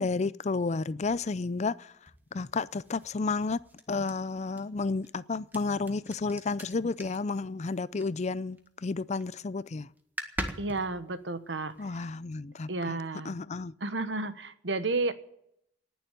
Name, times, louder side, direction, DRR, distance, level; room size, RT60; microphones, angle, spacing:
voice 1, 0.0-3.6 3.9-9.9 11.8-13.0 13.2-13.7, left 3 dB, 40° left, 0.5 m, -32 dB
sound 1, 1.0-8.7 9.0-9.4 9.7-9.8 10.0-12.4, right 1 dB, 10° right, 1.6 m, -43 dB
voice 2, 10.6-12.0 12.7-13.3 13.8-15.1, right 3 dB, 80° right, 1.2 m, -32 dB
19.0 x 7.0 x 9.0 m
head